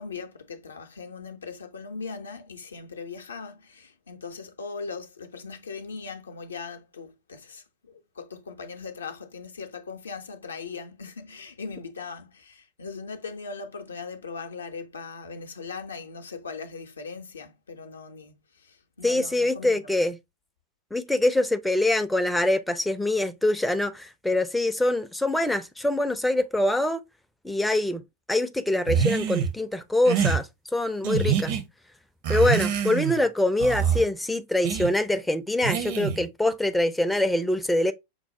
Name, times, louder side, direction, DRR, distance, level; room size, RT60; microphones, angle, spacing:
voice 1, 0.0-19.8, left 4 dB, 70° left, 0.5 m, -39 dB
voice 2, 19.0-20.2 20.9-27.0 27.4-28.0 28.3-31.6 32.3-37.9, left 1 dB, 5° left, 0.4 m, -24 dB
sound 1, 28.9-29.5 30.0-30.4 31.0-31.6 32.2-33.2 33.6-34.0 34.6-34.9 35.6-36.3, right 8 dB, 50° right, 0.6 m, -25 dB
5.8 x 2.0 x 2.7 m
figure-of-eight pair, 90°, 0 cm